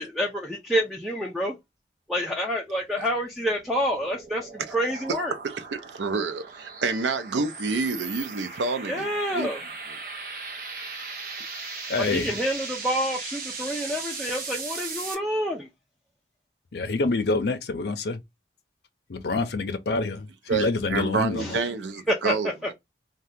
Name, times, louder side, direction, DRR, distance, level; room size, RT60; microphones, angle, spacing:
voice 1, 0.0-1.6 2.1-5.3 8.9-9.6 12.0-15.7 21.4-21.6 22.1-22.3 22.6-22.7, equal, ahead, 0.4 m, -28 dB
sound 1, 3.1-15.1, right 4 dB, 50° right, 0.7 m, -38 dB
voice 2, 5.4-9.1 9.3-9.5 11.0-11.1 20.5-22.7, right 4 dB, 85° right, 0.5 m, -28 dB
voice 3, 11.9-12.4 16.7-18.2 19.1-21.6, left 3 dB, 65° left, 0.5 m, -27 dB
2.7 x 2.3 x 3.4 m
head